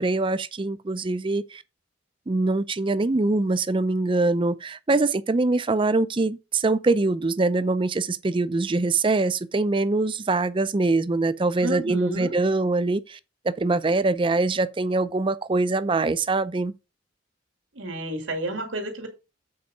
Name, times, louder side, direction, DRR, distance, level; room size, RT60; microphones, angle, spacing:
voice 1, 0.0-1.6 2.3-13.2 13.4-16.7, right 3 dB, 25° right, 0.4 m, -23 dB
voice 2, 11.6-12.4 17.7-19.1, right 1 dB, 80° right, 2.4 m, -31 dB
7.9 x 4.6 x 5.2 m
head